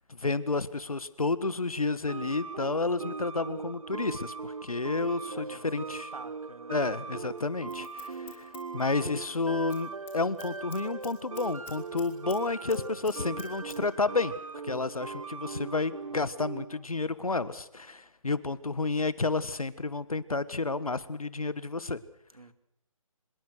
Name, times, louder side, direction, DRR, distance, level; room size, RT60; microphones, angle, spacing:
voice 1, 0.1-6.1 6.7-14.4 14.6-22.0, left 3 dB, 85° left, 1.7 m, -31 dB
sound 1, 2.1-16.8, right 4 dB, 70° right, 1.4 m, -40 dB
voice 2, 5.3-6.8 22.3-22.5, right 3 dB, 85° right, 2.5 m, -49 dB
Scissors, 7.4-9.3 9.6-9.8 10.1-12.4 12.7-13.8 14.1-14.2, left 10 dB, 10° left, 2.4 m, -50 dB
25.0 x 21.5 x 6.4 m
figure-of-eight pair, 155°, 18 cm